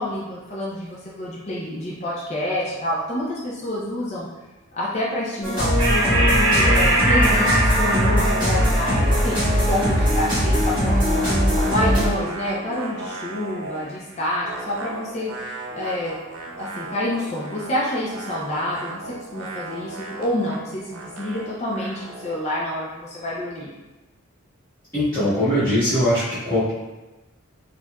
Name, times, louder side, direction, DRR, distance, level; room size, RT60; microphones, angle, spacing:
voice 1, 0.0-4.3 4.7-11.3 11.7-16.1 16.6-23.7, left 1 dB, 30° left, -5 dB, 0.4 m, -28 dB
sound 1, 5.4-12.1, equal, 20° right, 1.4 m, -20 dB
sound 2, 5.8-12.7, right 1 dB, 55° right, 1.2 m, -24 dB
sound 3, 7.1-10.4 10.6-13.9 14.4-22.5, right 2 dB, 90° right, 0.6 m, -35 dB
voice 2, 24.9-26.7, equal, 15° left, -18 dB, 1.3 m, -21 dB
4.4 x 2.4 x 2.2 m, 1.1 s
head